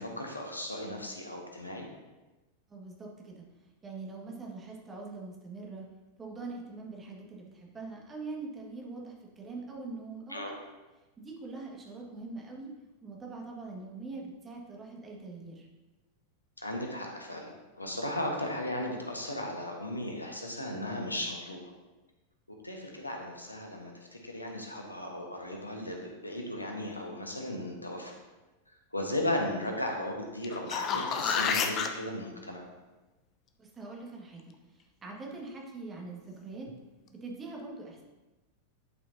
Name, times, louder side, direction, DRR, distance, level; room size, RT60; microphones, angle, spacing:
voice 1, 0.0-1.8 10.3-10.5 16.6-21.6 22.6-28.1 28.9-32.6, left 1 dB, 85° left, 2 dB, 1.3 m, -36 dB
voice 2, 2.7-3.4 3.8-5.9 6.2-10.5 11.2-12.7 13.0-15.7 33.6-34.4 35.0-36.7 37.1-38.0, right 3 dB, 20° right, -2 dB, 1.8 m, -43 dB
sound 1, 30.4-31.9 36.7-36.8, left 6 dB, 35° left, 0.7 m, -29 dB
11.0 x 5.6 x 2.8 m, 1.1 s
figure-of-eight pair, 90°, 0 cm